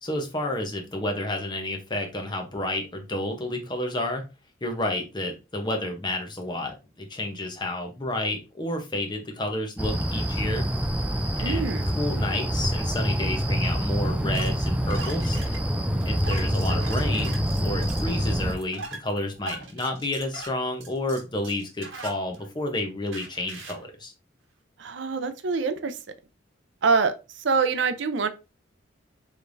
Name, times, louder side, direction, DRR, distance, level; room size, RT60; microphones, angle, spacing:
voice 1, 0.0-4.2 4.6-10.7 11.4-15.4 16.0-17.4 17.6-24.1, left 1 dB, 20° left, 0.8 m, -30 dB
sound 1, 9.8-18.5, equal, 5° right, 0.3 m, -26 dB
voice 2, 11.4-11.8 24.8-26.0 26.8-27.1 27.4-28.3, right 5 dB, 65° right, 0.5 m, -24 dB
sound 2, 14.3-22.7 23.1-23.8, right 3 dB, 85° right, 1.2 m, -41 dB
4.9 x 3.3 x 2.6 m
head